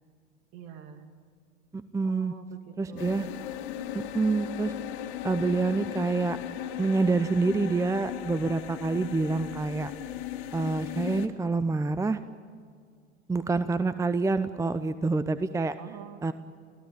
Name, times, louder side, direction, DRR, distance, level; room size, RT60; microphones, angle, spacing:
voice 1, 0.5-1.1 2.0-3.3 15.8-16.2, right 8 dB, 50° right, 7 dB, 2.7 m, -45 dB
voice 2, 1.7-2.3 2.8-3.3 3.9-4.7 5.2-6.4 6.8-9.9 10.5-12.2 13.3-15.8 16.2-16.3, right 3 dB, 10° right, 13 dB, 0.7 m, -27 dB
sound 1, 3.0-11.3, left 11 dB, 55° left, 2.3 m, -37 dB
29.5 x 17.5 x 8.8 m, 2.1 s
figure-of-eight pair, 80°, 35 cm